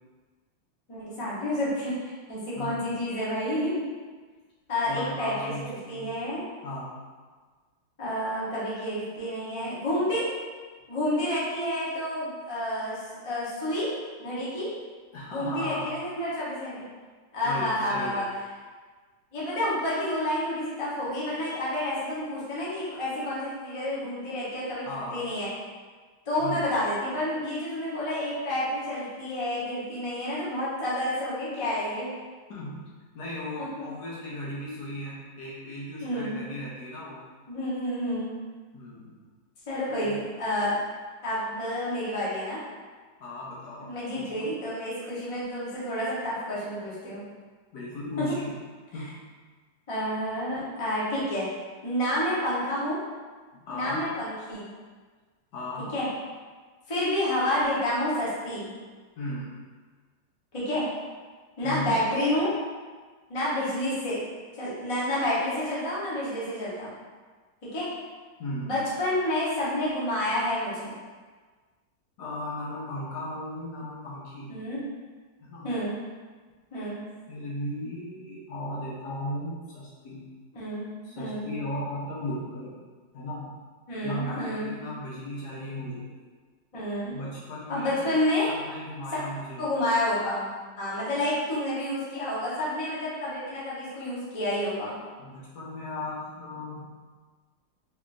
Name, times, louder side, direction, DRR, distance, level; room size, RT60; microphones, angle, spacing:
voice 1, 0.9-3.8 4.7-6.4 8.0-10.3 10.9-13.9 14.2-14.7 15.3-16.8 17.3-18.3 19.3-24.8 25.1-25.5 26.3-32.1 33.6-33.9 36.0-36.4 37.5-38.3 39.7-40.8 41.2-42.6 43.8-47.2 48.2-48.3 48.9-49.1 49.9-51.5 51.8-53.0 53.7-54.7 55.9-56.1 56.9-58.7 60.5-60.8 61.6-62.5 63.3-64.2 64.6-66.9 67.6-67.9 68.6-71.0 74.5-74.8 75.6-76.0 76.7-77.0 80.5-80.9 81.2-81.5 83.9-84.7 86.7-87.1 87.7-88.5 89.6-90.5 90.8-95.0, left 1 dB, 25° left, -8 dB, 0.7 m, -29 dB
voice 2, 2.5-2.9 4.9-6.1 6.6-7.0 15.1-15.9 17.4-18.2 24.9-25.2 26.4-26.7 32.5-37.2 38.7-39.1 40.0-40.2 43.2-44.5 47.7-48.4 48.9-49.1 53.5-54.1 55.5-55.9 59.2-59.5 61.6-62.0 68.4-68.7 72.2-74.5 75.4-75.7 77.3-80.2 81.0-82.7 83.1-83.5 84.0-86.1 87.1-88.1 88.5-89.7 95.2-96.9, left 1 dB, 70° left, -6 dB, 1.4 m, -36 dB
3.8 x 3.4 x 2.5 m, 1.5 s
omnidirectional pair, 2.0 m